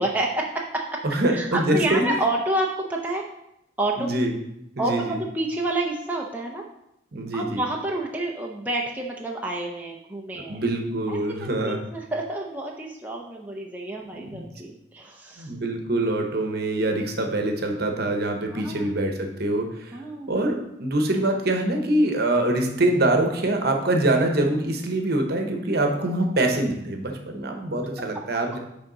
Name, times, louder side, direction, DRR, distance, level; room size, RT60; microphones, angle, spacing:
voice 1, 0.0-1.0 1.3-3.2 3.8-4.1 4.8-6.6 7.3-10.6 11.1-15.5 18.5-18.9 19.9-20.3, right 2 dB, 10° right, -1 dB, 0.5 m, -29 dB
voice 2, 1.0-2.1 4.0-4.3 4.8-5.2 7.1-7.6 10.5-11.8 14.1-14.5 15.4-20.0 20.3-28.6, right 1 dB, 55° right, 3 dB, 0.9 m, -24 dB
10.0 x 3.5 x 3.9 m, 0.82 s
head